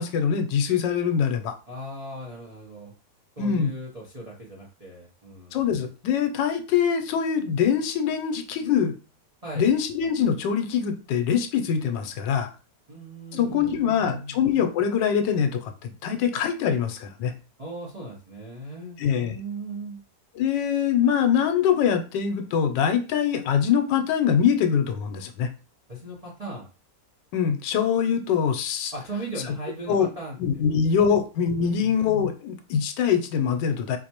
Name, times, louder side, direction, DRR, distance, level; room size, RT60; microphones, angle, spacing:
voice 1, 0.0-1.5 3.4-3.7 5.5-8.9 9.6-12.5 13.3-17.3 19.0-19.4 20.4-25.5 27.3-28.9 29.9-30.1 30.4-34.0, left 7 dB, 80° left, 7 dB, 1.2 m, -23 dB
voice 2, 1.7-2.9 3.4-5.6 9.4-9.7 12.9-14.4 17.6-20.0 25.9-26.7 28.9-31.1 31.6-31.9, right 2 dB, 40° right, -4 dB, 0.5 m, -38 dB
4.1 x 2.6 x 2.9 m, 0.33 s
omnidirectional pair, 2.0 m